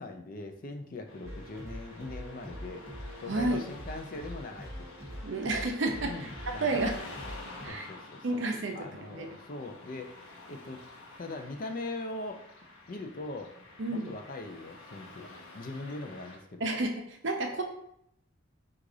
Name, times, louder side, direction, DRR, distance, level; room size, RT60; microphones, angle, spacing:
voice 1, 0.0-2.8 3.2-4.7 6.0-7.1 7.7-8.5 8.7-10.1 10.5-10.8 11.2-12.4 12.9-13.5 13.9-15.3 15.5-16.7, left 2 dB, 40° left, 5 dB, 0.4 m, -41 dB
Car passing by / Traffic noise roadway noise, 1.1-16.4, left 2 dB, 85° left, 0.9 m, -49 dB
sound 1, 1.2-7.7, equal, 15° right, 0.9 m, -43 dB
voice 2, 3.3-3.6 5.2-6.1 6.5-7.0 7.6-7.9 8.2-9.3 13.8-14.1 16.6-17.6, right 2 dB, 60° right, 3 dB, 0.6 m, -31 dB
4.7 x 2.4 x 3.8 m, 0.73 s
head